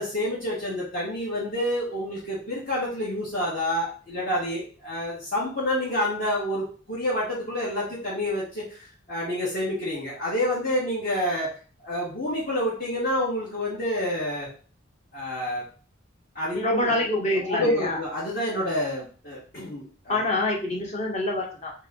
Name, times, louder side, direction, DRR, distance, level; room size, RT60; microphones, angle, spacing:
voice 1, 0.0-11.5 11.8-14.5 15.1-15.6 16.3-16.8 17.3-20.1, left 1 dB, 50° left, -9 dB, 1.6 m, -28 dB
voice 2, 16.5-18.0 20.1-21.7, left 2 dB, 35° left, -1 dB, 1.1 m, -26 dB
3.4 x 3.4 x 3.7 m, 0.38 s
head